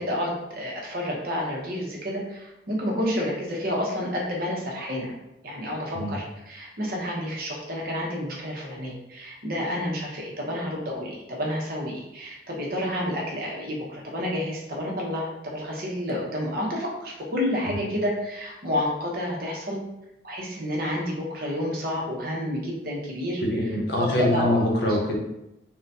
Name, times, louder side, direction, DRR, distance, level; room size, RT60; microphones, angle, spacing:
voice 1, 0.0-5.1 5.4-19.8 20.2-23.4 24.0-24.6 24.9-25.0, left 1 dB, 50° right, -2 dB, 0.8 m, -29 dB
voice 2, 23.4-25.2, left 1 dB, 65° left, 0 dB, 0.7 m, -24 dB
3.8 x 2.2 x 2.7 m, 0.88 s
head